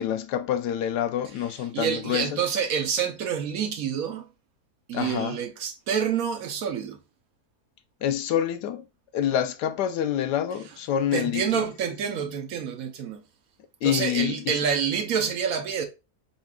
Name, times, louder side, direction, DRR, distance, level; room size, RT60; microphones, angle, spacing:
voice 1, 0.0-2.4 4.9-5.4 8.0-8.8 9.1-11.6 13.8-14.6, left 10 dB, 85° left, 1.2 m, -27 dB
voice 2, 1.7-4.3 4.9-7.0 11.1-13.2 13.8-15.9, right 7 dB, 65° right, 1.1 m, -27 dB
4.3 x 4.1 x 2.3 m
omnidirectional pair, 1.7 m